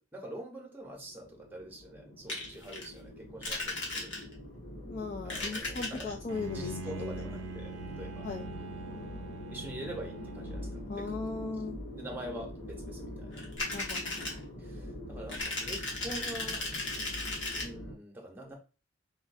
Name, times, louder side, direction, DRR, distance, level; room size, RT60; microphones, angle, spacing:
voice 1, 0.0-4.1 5.2-6.1 6.5-8.3 9.5-11.2 11.9-13.4 14.6-16.8 17.6-18.5, right 1 dB, 10° right, 0 dB, 0.8 m, -45 dB
sound 1, 0.8-17.9, left 1 dB, 90° left, 1.2 m, -44 dB
sound 2, 2.3-2.9 3.4-4.4 5.2-6.1 13.3-14.4 15.3-17.6, left 2 dB, 65° left, 1.1 m, -36 dB
voice 2, 4.9-7.1 8.2-8.5 10.9-11.8 13.7-14.5, left 4 dB, 35° left, 4 dB, 0.3 m, -38 dB
Bowed string instrument, 6.3-11.2, right 4 dB, 65° right, 0.4 m, -43 dB
4.0 x 2.5 x 2.5 m, 0.33 s
head